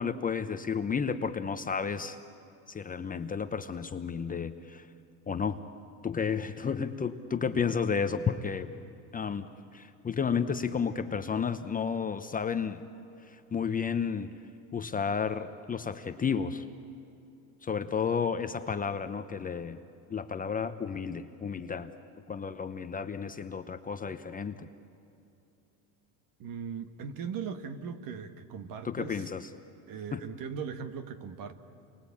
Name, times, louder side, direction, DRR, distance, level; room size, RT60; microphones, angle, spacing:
voice 1, 0.0-2.2 2.7-4.9 5.3-5.6 6.0-8.7 9.1-9.5 9.7-12.8 13.2-14.3 14.7-16.6 17.6-19.8 20.1-21.9 22.3-24.7 28.8-29.5 30.1-30.2, left 6 dB, 20° left, 9 dB, 0.9 m, -32 dB
voice 2, 26.4-29.3 29.9-31.5, right 6 dB, 50° right, 10 dB, 1.8 m, -39 dB
29.5 x 23.5 x 8.7 m, 2.7 s
supercardioid pair, 120°, 44 cm